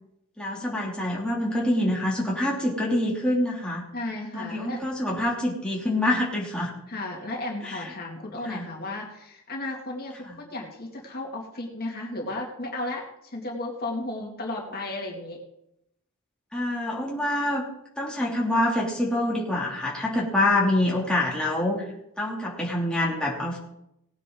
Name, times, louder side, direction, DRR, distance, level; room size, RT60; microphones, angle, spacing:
voice 1, 0.4-3.8 4.3-6.7 7.6-7.9 8.4-8.7 10.3-10.4 16.5-17.6 18.0-21.9 22.2-23.6, left 1 dB, 5° left, -4 dB, 2.8 m, -26 dB
voice 2, 3.9-4.8 6.9-15.4 20.4-20.6, left 2 dB, 45° left, -1 dB, 2.4 m, -34 dB
19.0 x 9.3 x 3.9 m, 0.80 s
head